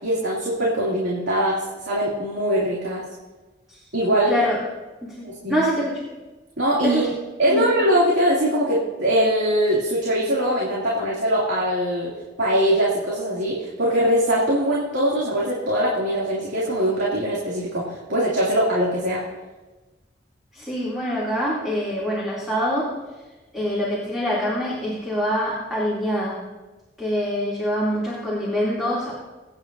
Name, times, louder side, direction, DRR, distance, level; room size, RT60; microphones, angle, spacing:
voice 1, 0.0-3.0 3.9-4.3 5.2-5.6 6.6-7.0 7.4-12.1 12.4-19.2, equal, 85° right, -6 dB, 2.6 m, -22 dB
voice 2, 4.3-4.6 5.0-6.0 6.8-7.0 7.5-7.6 20.5-22.9 23.5-26.4 27.0-29.1, equal, 5° right, -7 dB, 2.7 m, -25 dB
23.5 x 9.2 x 2.7 m, 1.2 s
head